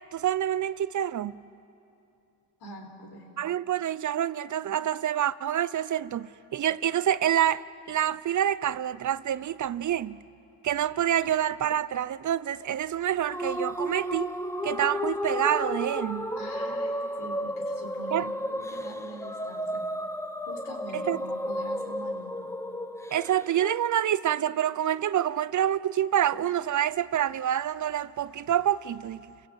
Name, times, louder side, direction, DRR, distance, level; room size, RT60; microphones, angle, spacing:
voice 1, 0.1-1.3 3.4-10.2 10.6-14.3 14.6-16.3 18.1-18.3 20.9-21.2 23.1-29.2, right 10 dB, 45° right, 0.6 m, -27 dB
voice 2, 2.6-3.3 16.4-19.8 20.5-22.6, right 1 dB, 70° left, 4.4 m, -44 dB
sound 1, 13.3-23.7, equal, 5° left, 0.9 m, -33 dB
30.0 x 16.5 x 8.1 m
cardioid pair, 80°, 40 cm